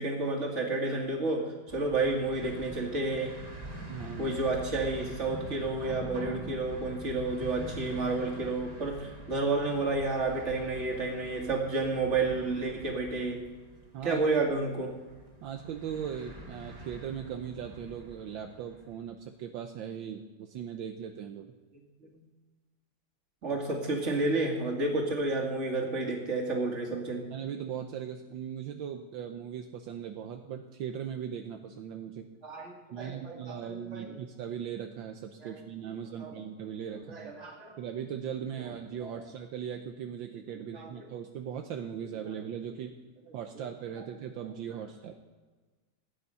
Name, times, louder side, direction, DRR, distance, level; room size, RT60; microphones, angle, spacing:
voice 1, 0.0-1.5 1.7-3.3 4.2-13.4 14.0-14.9 22.1-22.2 23.4-27.3 32.4-34.1 35.4-35.6 36.2-36.3 37.1-37.8 39.0-39.2 40.7-41.0, right 3 dB, 35° right, 0 dB, 2.6 m, -31 dB
sound 1, 1.7-18.9, right 1 dB, 20° right, 2.0 m, -44 dB
voice 2, 3.9-4.4 13.9-14.3 15.4-21.5 23.5-23.6 27.3-32.3 32.9-37.3 37.8-43.0 43.3-45.1, right 8 dB, 75° right, 5 dB, 1.5 m, -39 dB
15.0 x 9.7 x 5.6 m, 1.3 s
omnidirectional pair, 2.2 m